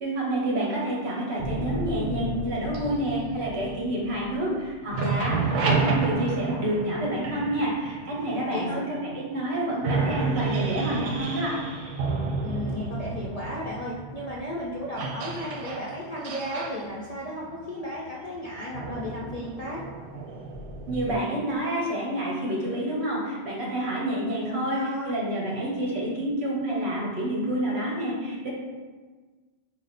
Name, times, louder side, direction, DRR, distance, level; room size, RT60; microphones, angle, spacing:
voice 1, 0.0-8.7 9.0-11.6 20.9-28.5, right 1 dB, 65° right, -4 dB, 1.3 m, -28 dB
sound 1, 1.4-4.6 4.8-8.8 9.4-9.5 9.8-21.2, right 4 dB, 90° right, 0.9 m, -31 dB
voice 2, 8.5-8.8 12.4-19.8 24.4-25.1, left 1 dB, 50° left, -5 dB, 0.5 m, -34 dB
5.1 x 2.1 x 4.0 m, 1.4 s
omnidirectional pair, 1.2 m